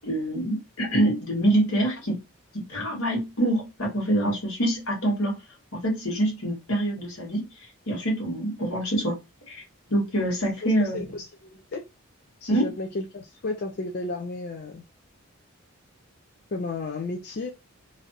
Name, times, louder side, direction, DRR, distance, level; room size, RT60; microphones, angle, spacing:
voice 1, 0.0-2.2 2.5-5.4 5.7-7.5 7.9-9.2 9.5-9.6 9.9-11.0 12.5-12.7, right 1 dB, 80° left, 1.7 m, -25 dB
voice 2, 10.9-11.8 12.4-14.8 16.5-17.5, left 3 dB, 45° left, 0.4 m, -33 dB
3.2 x 2.5 x 2.6 m
head